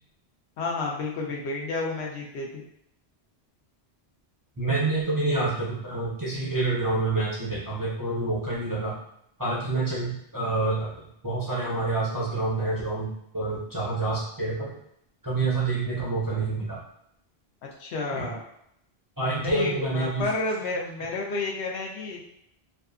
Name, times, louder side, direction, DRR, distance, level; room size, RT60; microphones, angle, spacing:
voice 1, 0.6-2.6 17.6-18.4 19.4-22.2, left 3 dB, 90° left, -1 dB, 0.9 m, -31 dB
voice 2, 4.6-9.0 9.4-14.7 15.2-16.8 18.1-18.3 19.2-20.3, right 2 dB, 30° right, -7 dB, 0.4 m, -27 dB
2.6 x 2.3 x 2.3 m, 0.75 s
omnidirectional pair, 1.1 m